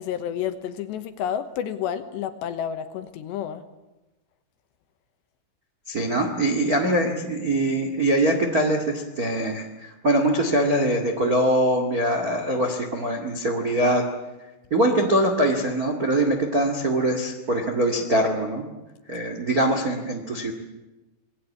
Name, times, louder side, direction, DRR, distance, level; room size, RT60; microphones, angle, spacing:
voice 1, 0.0-3.6, left 9 dB, 70° left, 9 dB, 3.0 m, -30 dB
voice 2, 5.9-14.0 14.7-18.7 19.1-20.5, right 1 dB, 60° right, 3 dB, 0.9 m, -23 dB
27.0 x 20.0 x 8.6 m, 1.1 s
omnidirectional pair, 5.7 m